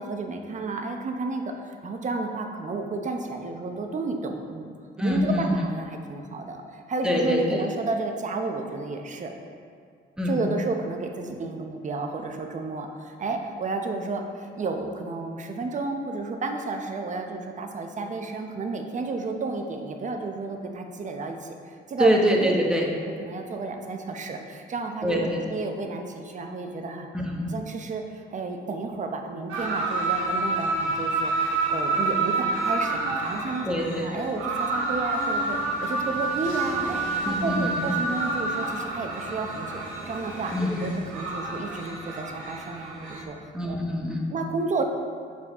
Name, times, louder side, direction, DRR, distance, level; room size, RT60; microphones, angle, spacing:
voice 1, 0.0-9.3 10.3-22.5 23.2-27.1 27.5-33.7 34.0-39.8 40.0-40.5 40.8-43.8 44.3-44.8, right 3 dB, 40° right, 4 dB, 0.7 m, -32 dB
voice 2, 5.0-5.5 7.0-7.6 10.2-10.4 22.0-22.8 25.0-25.4 27.1-27.4 33.7-34.0 37.2-37.7 40.5-40.7 43.5-44.3, equal, 5° right, -1 dB, 1.1 m, -24 dB
sound 1, 29.5-43.2, right 3 dB, 80° right, 1.2 m, -28 dB
7.1 x 4.7 x 3.6 m, 2.3 s
cardioid pair, 90°, 20 cm